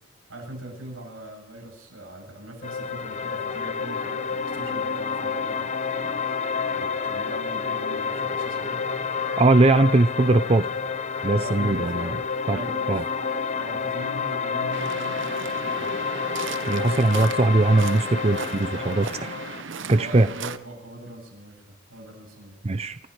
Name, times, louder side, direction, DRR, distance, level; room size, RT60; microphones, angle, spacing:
voice 1, 0.3-8.9 11.3-16.1 17.3-17.4 19.9-22.9, right 1 dB, 90° right, 1 dB, 8.0 m, -41 dB
sound 1, 2.6-19.6, left 5 dB, 35° left, 0.7 m, -29 dB
voice 2, 9.4-10.7 11.2-12.2 12.5-12.6 12.9-13.0 16.7-19.4 19.9-20.3 22.6-23.0, right 2 dB, 30° right, 11 dB, 0.5 m, -20 dB
Waves surf, 14.7-20.6, right 5 dB, 60° right, 0.9 m, -36 dB
27.5 x 14.5 x 3.3 m, 0.67 s
head